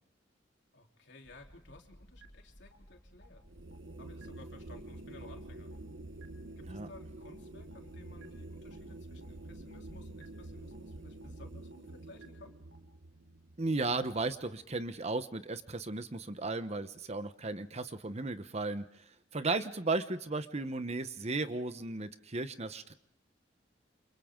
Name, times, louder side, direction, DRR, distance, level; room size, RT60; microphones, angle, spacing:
voice 1, 0.7-3.4 4.0-5.7 6.6-12.6, left 2 dB, 65° left, 2 dB, 3.6 m, -56 dB
sound 1, 1.2-11.5, equal, 15° left, 2.0 m, -58 dB
sound 2, 2.2-2.3 2.7-2.8 3.2-3.3 3.7-3.8 4.2-4.3 4.7-4.8 5.2-5.3 5.7-5.8 6.2-6.3 6.7-6.8 7.2-7.3 7.7-7.8 8.2-8.3 8.7-8.8 9.2-9.3 9.7-9.8 10.2-10.3 10.7-10.8 11.2-11.3 11.7-11.8 12.2-12.3 12.7-12.8, right 6 dB, 85° right, 3.3 m, -58 dB
sound 3, 3.4-14.8, right 2 dB, 70° right, 1.0 m, -48 dB
voice 2, 13.6-18.8 19.3-22.9, right 3 dB, 35° right, 11 dB, 1.0 m, -35 dB
29.0 x 27.5 x 3.8 m, 0.74 s
head